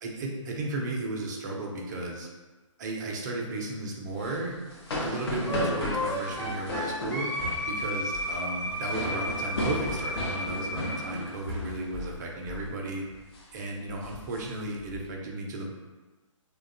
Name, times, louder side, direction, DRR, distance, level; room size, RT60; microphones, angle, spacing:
voice 1, 0.0-2.3 2.8-4.6 5.0-7.3 7.7-13.0 13.5-15.8, right 2 dB, 35° right, -1 dB, 0.4 m, -34 dB
sound 1, 4.1-12.2 12.5-12.7 13.1-13.4 13.9-15.0, left 1 dB, 50° left, 0.6 m, -35 dB
Wind instrument woodwind instrument, 5.5-11.1, equal, 10° left, 0.6 m, -33 dB
2.5 x 2.2 x 2.4 m, 1.2 s
figure-of-eight pair, 135°, 17 cm